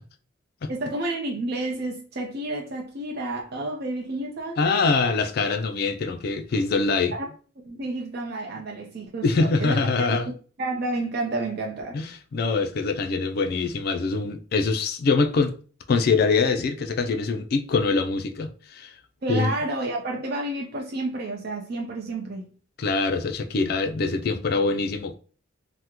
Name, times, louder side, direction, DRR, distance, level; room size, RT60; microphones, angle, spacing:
voice 1, 0.7-5.1 7.2-7.3 7.6-9.8 10.1-10.2 10.6-12.0 19.2-22.5, right 2 dB, 55° right, 0.5 m, -30 dB
voice 2, 4.6-7.2 9.2-10.3 11.9-12.1 12.3-15.6 15.9-18.9 19.3-19.5 22.8-25.1, left 4 dB, 55° left, 0.4 m, -24 dB
3.5 x 2.1 x 2.9 m
head